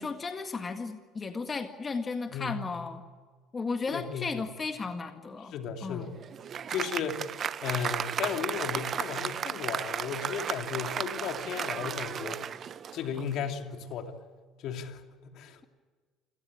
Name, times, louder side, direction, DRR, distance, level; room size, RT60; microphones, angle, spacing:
voice 1, 0.0-3.0 3.5-5.5 5.8-6.1, left 4 dB, 30° left, 6 dB, 1.9 m, -34 dB
voice 2, 2.3-2.8 3.9-4.4 5.5-6.1 6.7-7.3 7.6-12.4 12.9-14.1 14.6-15.6, left 7 dB, 65° left, 5 dB, 2.9 m, -35 dB
Applause, 5.9-13.4, right 8 dB, 45° right, 0.9 m, -34 dB
28.0 x 18.0 x 8.8 m, 1.5 s
hypercardioid pair, 70°, 0 cm